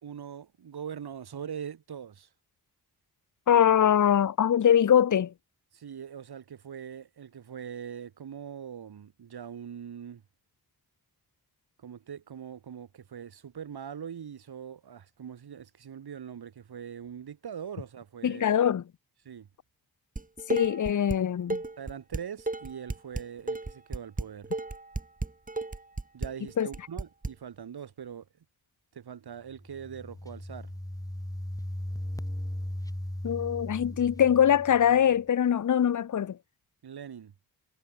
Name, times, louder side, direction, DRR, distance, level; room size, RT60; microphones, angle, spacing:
voice 1, 0.0-2.3 5.7-10.2 11.8-18.6 19.2-19.5 21.8-24.5 26.1-28.3 28.9-30.7 36.8-37.3, right 8 dB, 85° right, 2.1 m, -42 dB
voice 2, 3.5-5.3 18.2-18.8 20.5-21.6 26.6-26.7 33.2-36.4, left 9 dB, 50° left, 0.7 m, -23 dB
Dishes pots and pans, 20.2-21.2 21.5-27.3, right 2 dB, 20° right, 1.4 m, -33 dB
sound 1, 29.5-35.2, left 1 dB, 10° left, 5.7 m, -37 dB
cardioid pair, 45°, 38 cm